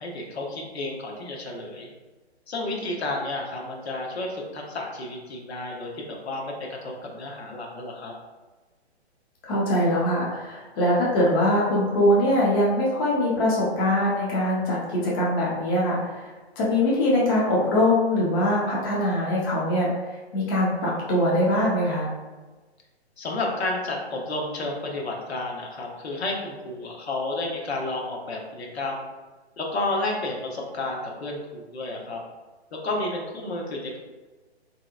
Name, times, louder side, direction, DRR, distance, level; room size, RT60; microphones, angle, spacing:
voice 1, 0.0-1.9 2.5-6.5 6.8-8.1 23.2-29.0 29.6-32.2 32.8-34.0, left 2 dB, 70° left, 0 dB, 0.8 m, -31 dB
voice 2, 9.4-16.3 16.6-19.9 20.3-22.1, left 1 dB, 20° left, -5 dB, 0.5 m, -22 dB
3.2 x 2.8 x 2.3 m, 1.2 s
figure-of-eight pair, 135°, 33 cm